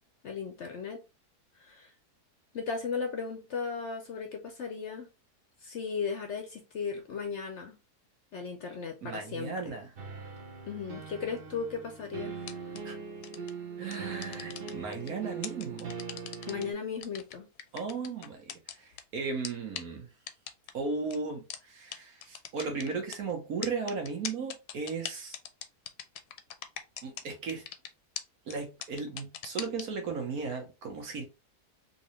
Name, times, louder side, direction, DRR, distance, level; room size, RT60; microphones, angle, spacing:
voice 1, 0.2-1.0 1.6-1.9 2.5-5.1 5.6-7.8 8.3-9.8 10.7-12.4 16.5-17.5, left 5 dB, 60° left, 0.8 m, -36 dB
voice 2, 9.0-9.9 12.8-13.0 13.8-15.9 17.7-20.1 20.7-25.4 27.0-27.7 28.4-31.2, right 4 dB, 70° right, 1.5 m, -36 dB
sound 1, 10.0-16.7, right 5 dB, 45° right, 0.8 m, -41 dB
sound 2, 12.4-12.8 13.2-13.5 13.9-15.1 15.4-16.6 17.0-19.0 19.4-19.5 19.8-19.9 20.3-20.7 21.1-21.2 21.5-21.6 21.9-22.0 22.2-23.2 23.6-27.2 27.5-27.9 28.2-28.3 28.5-28.6 28.8-29.8, left 10 dB, 85° left, 1.1 m, -39 dB
3.9 x 2.8 x 3.0 m
omnidirectional pair, 1.6 m